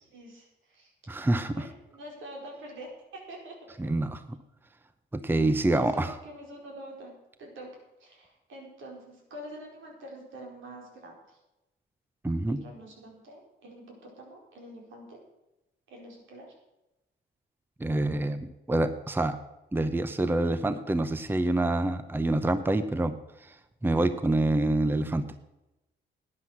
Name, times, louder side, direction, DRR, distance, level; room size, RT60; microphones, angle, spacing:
voice 1, 0.1-0.9 1.4-3.7 5.7-7.1 7.4-7.7 8.0-11.4 12.5-15.2 15.9-16.5, right 1 dB, 80° right, 0 dB, 4.7 m, -46 dB
voice 2, 1.1-1.7 3.8-4.2 5.1-6.2 12.2-12.6 17.8-19.4 19.7-23.1 23.4-23.5 23.8-25.2, right 2 dB, 10° right, 11 dB, 0.8 m, -26 dB
11.5 x 9.8 x 6.1 m, 0.96 s
cardioid pair, 90°, 20 cm